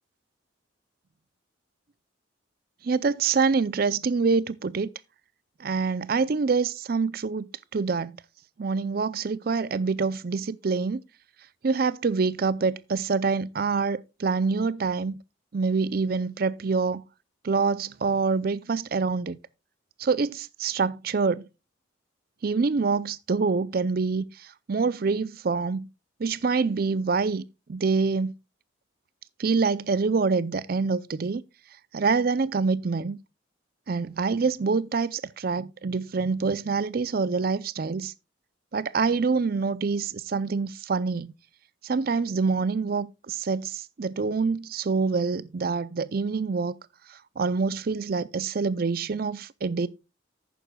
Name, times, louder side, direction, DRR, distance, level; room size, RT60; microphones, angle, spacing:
voice 1, 2.8-4.9 5.6-8.2 8.6-11.0 11.6-15.2 15.5-17.0 17.4-19.4 20.0-21.4 22.4-25.9 26.2-28.3 29.4-31.4 31.9-33.2 33.9-38.1 38.7-41.3 41.8-46.8 47.1-49.9, right 4 dB, 45° right, 0.4 m, -26 dB
11.0 x 9.1 x 2.2 m
head